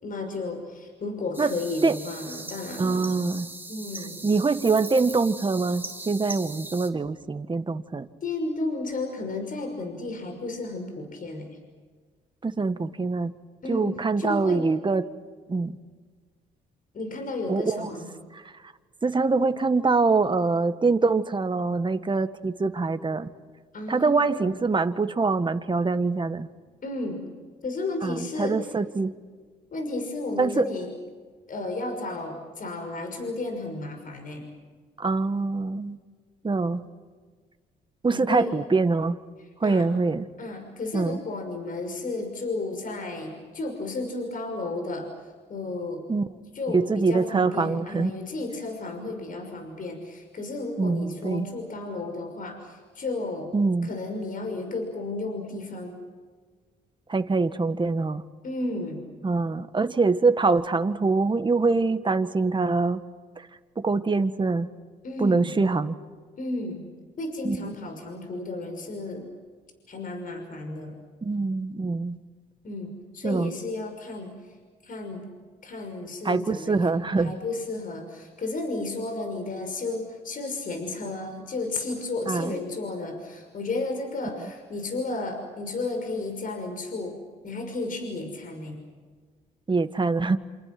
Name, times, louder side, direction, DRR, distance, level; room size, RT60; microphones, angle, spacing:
voice 1, 0.0-3.2 3.7-4.2 8.2-11.5 13.6-13.9 14.2-14.7 16.9-18.1 23.7-24.5 26.8-27.2 27.6-28.6 29.7-30.9 31.5-34.5 38.1-38.6 39.6-39.9 40.4-45.1 45.5-46.0 46.5-53.5 53.8-56.0 58.4-59.1 65.0-65.5 66.4-66.8 67.2-69.3 69.9-70.9 72.6-74.4 74.8-75.3 75.6-87.2 87.4-88.8, left 2 dB, 50° left, 5 dB, 5.9 m, -33 dB
sound 1, 1.3-6.9, right 2 dB, 10° right, 3.3 m, -40 dB
voice 2, 2.8-3.5 4.2-8.1 12.4-13.3 13.7-15.0 15.5-15.7 17.5-18.0 18.3-18.4 19.0-23.3 23.9-26.5 28.0-29.1 30.4-30.7 35.0-36.0 36.4-36.8 38.0-39.2 39.6-40.2 40.9-41.2 46.1-46.3 46.7-48.1 50.8-51.5 53.5-53.9 57.1-58.2 59.2-63.0 63.4-63.5 63.8-64.7 65.2-66.0 67.4-67.7 71.2-72.2 73.2-73.5 76.2-77.4 82.3-82.5 89.7-90.4, right 3 dB, 25° right, 9 dB, 1.8 m, -24 dB
28.0 x 28.0 x 6.2 m, 1.5 s
supercardioid pair, 70°, 18 cm